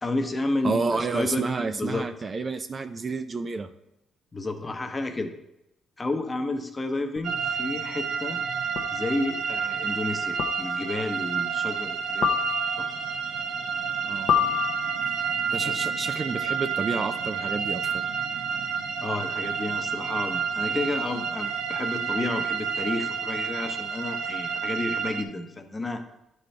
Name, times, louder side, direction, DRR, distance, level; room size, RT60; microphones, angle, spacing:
voice 1, 0.0-2.1 4.3-5.3 6.0-8.4 8.9-12.3 12.8-12.9 15.4-15.8 19.0-26.0, left 2 dB, 25° left, 6 dB, 0.8 m, -31 dB
voice 2, 0.6-3.7 14.1-14.5 15.5-18.0, right 4 dB, 40° right, 8 dB, 0.5 m, -30 dB
sound 1, 7.2-7.3 8.8-9.1 10.4-11.0 12.2-13.0 14.3-15.2, left 9 dB, 70° left, 0.7 m, -28 dB
sound 2, 7.2-25.2, right 6 dB, 75° right, 0.8 m, -29 dB
10.5 x 4.3 x 3.3 m, 0.87 s
cardioid pair, 90°, 0 cm